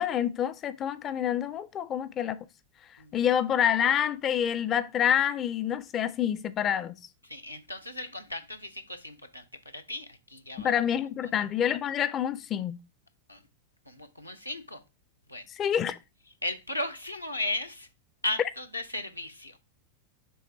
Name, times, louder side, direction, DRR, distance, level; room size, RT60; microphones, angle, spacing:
voice 1, 0.0-2.4 3.1-6.9 10.6-12.8 15.5-16.0, left 9 dB, 30° left, 0.4 m, -27 dB
voice 2, 7.3-9.4 9.7-10.7 11.2-11.3 13.3-13.4 13.9-14.8 15.3-15.4 16.4-17.9 18.2-19.6, left 2 dB, 85° left, 0.8 m, -36 dB
6.8 x 3.2 x 4.8 m
figure-of-eight pair, 90°, 0 cm